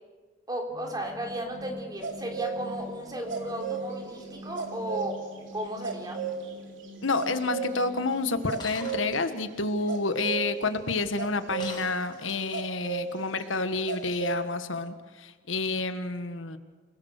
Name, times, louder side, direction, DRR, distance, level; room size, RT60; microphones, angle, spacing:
voice 1, 0.5-5.2 5.5-6.2, right 1 dB, 20° right, 3 dB, 3.8 m, -34 dB
sound 1, 0.7-8.5, equal, 50° right, 4.9 m, -45 dB
sound 2, 2.0-2.5 3.0-11.8 12.5-13.1 13.4-13.5 13.9-14.4, right 6 dB, 70° right, 3.4 m, -35 dB
voice 2, 7.0-16.6, left 3 dB, 85° left, 9 dB, 1.6 m, -29 dB
Shatter, 8.6-9.2 11.6-12.6, left 4 dB, 25° left, 6.5 m, -42 dB
29.0 x 19.5 x 6.6 m, 1.5 s
head